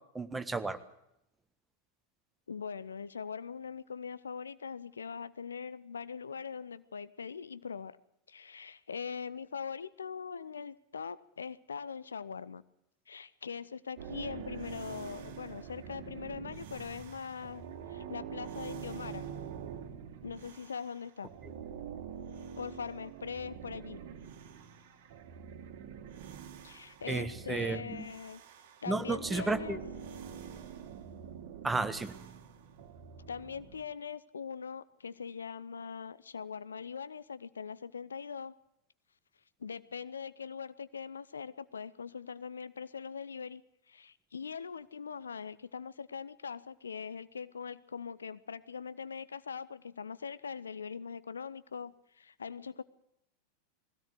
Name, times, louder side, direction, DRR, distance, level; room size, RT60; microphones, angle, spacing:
voice 1, 0.1-0.8 27.1-28.1 28.9-29.8 31.6-32.1, right 3 dB, 10° right, 10 dB, 1.5 m, -33 dB
voice 2, 2.5-8.0 8.3-12.6 13.1-17.6 17.9-19.2 20.2-21.3 22.6-24.0 26.6-28.4 28.8-29.8 33.3-38.5 39.6-43.6 43.9-52.8, left 6 dB, 70° left, 15 dB, 0.7 m, -42 dB
sound 1, 14.0-21.0 21.3-33.8, right 8 dB, 50° right, 2.0 m, -46 dB
20.5 x 16.5 x 7.9 m, 0.81 s
figure-of-eight pair, 90°, 0 cm